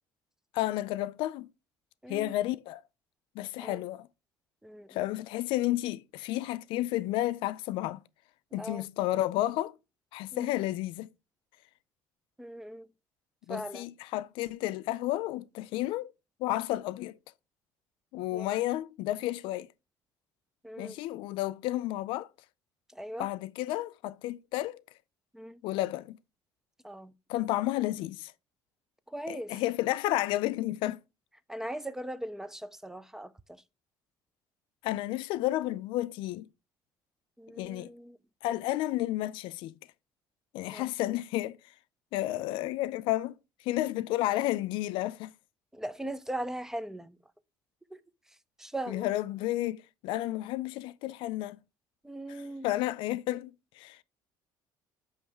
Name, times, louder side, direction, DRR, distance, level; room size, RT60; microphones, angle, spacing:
voice 1, 0.5-1.5 2.1-2.8 3.4-4.1 4.9-8.0 8.5-9.8 10.1-11.1 13.5-16.1 16.4-17.1 18.1-19.7 20.8-22.3 23.2-24.8 25.6-26.2 27.3-28.3 29.3-31.0 34.8-36.5 37.6-37.9 38.4-39.7 40.5-41.6 42.1-43.4 43.6-45.3 48.9-51.6 52.3-54.0, left 15 dB, 80° left, 0.4 m, -31 dB
voice 2, 2.0-2.3 3.6-3.8 4.6-5.0 8.6-8.8 10.3-10.5 12.4-12.9 13.5-13.9 18.3-18.5 20.6-21.0 22.9-23.3 25.3-25.6 26.8-27.1 29.1-29.5 31.5-33.6 37.4-38.2 40.7-40.8 45.7-47.2 47.9-48.0 48.6-49.1 52.0-52.7, right 1 dB, 5° right, 0.4 m, -39 dB
7.2 x 3.1 x 4.6 m
cardioid pair, 125°, 9 cm